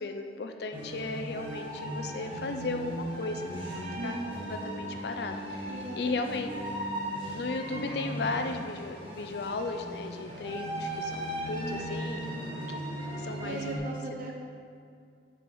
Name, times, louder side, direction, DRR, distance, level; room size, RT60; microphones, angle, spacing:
voice 1, 0.0-6.5 7.3-12.2 12.7-12.8 13.2-14.0, left 3 dB, 65° left, 5 dB, 0.4 m, -36 dB
sound 1, 0.7-13.8, right 1 dB, 30° right, 1.4 m, -37 dB
voice 2, 4.0-4.5 5.7-6.5 11.5-12.4 13.4-14.3, right 1 dB, 50° right, -2 dB, 0.6 m, -40 dB
6.9 x 4.7 x 5.5 m, 2.3 s
head